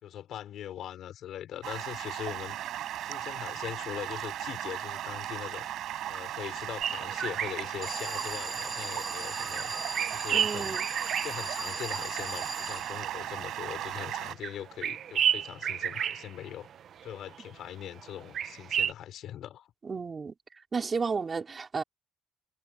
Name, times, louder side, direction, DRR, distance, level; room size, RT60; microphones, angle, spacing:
voice 1, 0.0-2.6 3.0-5.7 6.1-9.7 10.1-10.8 11.2-16.7 17.0-19.7, left 11 dB, 75° left, 4.1 m, -41 dB
Stream, 1.6-14.3, right 12 dB, 80° right, 5.3 m, -37 dB
sound 1, 6.8-9.2 9.4-12.3 12.6-17.6 17.8-18.9, right 9 dB, 65° right, 1.1 m, -33 dB
Alarm, 7.8-13.4, right 2 dB, 15° right, 5.9 m, -39 dB
voice 2, 10.3-10.9 19.8-20.3 20.7-21.8, right 5 dB, 35° right, 4.1 m, -32 dB
cardioid pair, 90°, 0 cm